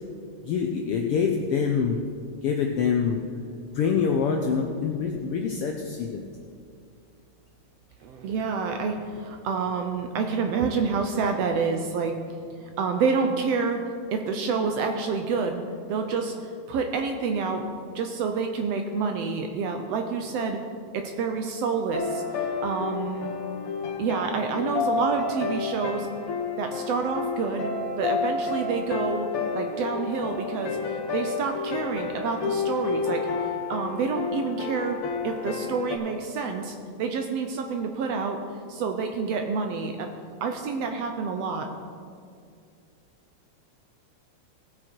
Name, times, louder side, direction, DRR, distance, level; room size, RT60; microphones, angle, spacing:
voice 1, 0.5-2.0 2.4-3.2 3.7-6.2, left 6 dB, 80° left, 2 dB, 1.3 m, -25 dB
voice 2, 8.0-12.2 12.6-17.6 17.9-20.6 20.9-23.3 24.0-26.1 26.6-27.7 28.0-38.4 38.7-40.1 40.4-41.7, right 5 dB, 75° right, 4 dB, 1.6 m, -28 dB
sound 1, 21.9-36.0, left 4 dB, 60° left, 1.7 m, -30 dB
18.0 x 6.3 x 4.4 m, 2.2 s
omnidirectional pair, 3.3 m